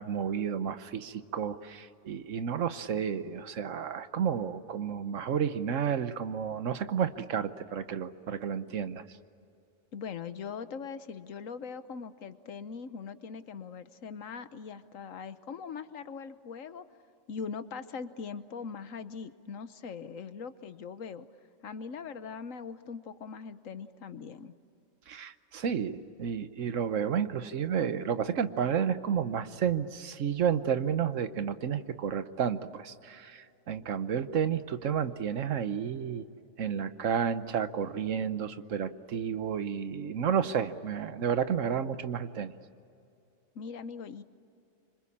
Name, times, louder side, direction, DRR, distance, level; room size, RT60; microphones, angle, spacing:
voice 1, 0.0-9.0 25.1-36.3 36.6-42.5, right 7 dB, 75° right, 12 dB, 1.3 m, -31 dB
voice 2, 9.9-16.8 17.3-21.3 21.6-24.5 43.5-44.2, left 6 dB, 85° left, 12 dB, 1.4 m, -41 dB
26.0 x 25.5 x 8.6 m, 2.7 s
omnidirectional pair, 1.3 m